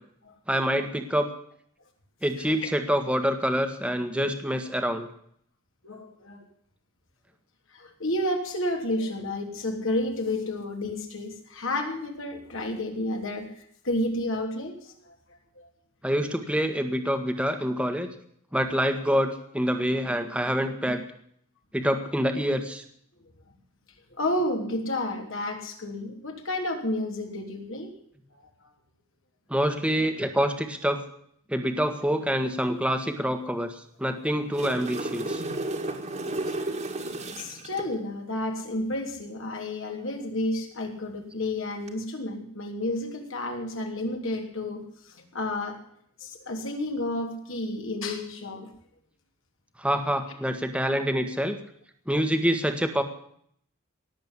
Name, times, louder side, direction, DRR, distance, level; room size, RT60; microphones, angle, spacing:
voice 1, 0.5-1.3 2.2-5.1 16.0-18.1 18.5-21.0 21.7-22.8 29.5-31.0 31.5-35.4 49.8-51.6 52.1-53.0, equal, 5° right, 6 dB, 1.6 m, -26 dB
voice 2, 4.1-4.6 5.8-6.4 7.7-15.7 20.9-21.0 24.2-27.9 28.6-28.7 30.0-30.1 36.5-36.6 37.4-45.8 46.2-48.7, left 1 dB, 65° left, 3 dB, 3.1 m, -31 dB
sound 1, 34.3-37.9 41.7-41.9, right 2 dB, 35° right, 2.0 m, -33 dB
18.5 x 7.8 x 9.8 m, 0.65 s
head